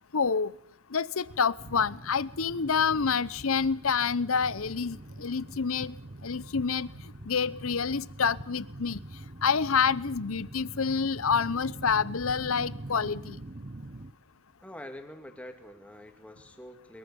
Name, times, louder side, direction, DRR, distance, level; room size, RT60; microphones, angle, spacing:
voice 1, 0.1-0.5 0.9-5.9 6.2-6.9 7.3-9.0 9.4-13.4, left 6 dB, 70° left, 0.8 m, -28 dB
sound 1, 1.6-14.1, right 2 dB, 40° right, 1.0 m, -44 dB
voice 2, 14.6-17.0, left 1 dB, 5° left, 2.3 m, -45 dB
23.0 x 22.0 x 7.0 m
head